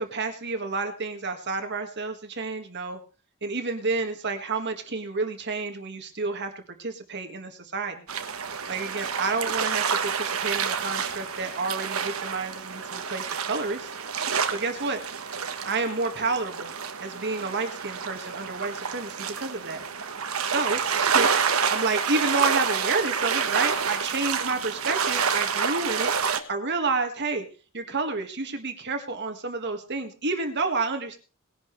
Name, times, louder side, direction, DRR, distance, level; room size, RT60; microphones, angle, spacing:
voice 1, 0.0-3.0 3.4-8.1 8.7-13.9 14.5-15.0 15.6-16.7 17.0-19.8 20.5-26.1 26.5-27.5 27.7-31.2, right 3 dB, 55° right, 5 dB, 1.9 m, -30 dB
sound 1, 8.1-26.4, right 6 dB, 85° right, 1.4 m, -28 dB
20.0 x 11.0 x 3.3 m, 0.36 s
head